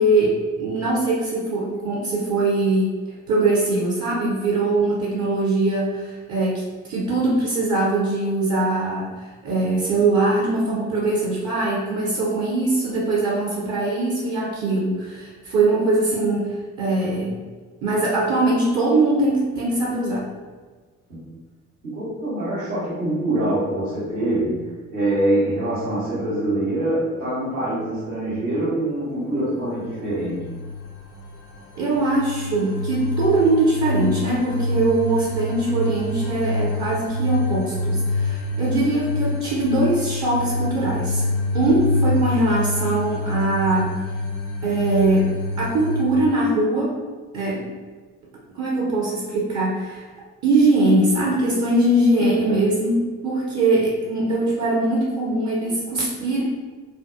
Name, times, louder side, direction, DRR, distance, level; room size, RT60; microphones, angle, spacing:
voice 1, 0.0-2.9 3.3-6.6 6.9-9.1 9.4-17.4 17.8-20.3 31.8-41.3 41.5-43.9 44.6-45.3 45.6-47.0 47.3-47.7 48.5-50.1 50.4-52.9 53.2-56.4, right 2 dB, 40° right, -4 dB, 0.6 m, -21 dB
voice 2, 21.8-24.6 24.9-30.4, right 1 dB, 75° right, -13 dB, 1.0 m, -24 dB
sound 1, 29.7-46.0, left 2 dB, 40° left, 0.5 m, -26 dB
2.5 x 2.2 x 2.3 m, 1.4 s
figure-of-eight pair, 50°, 42 cm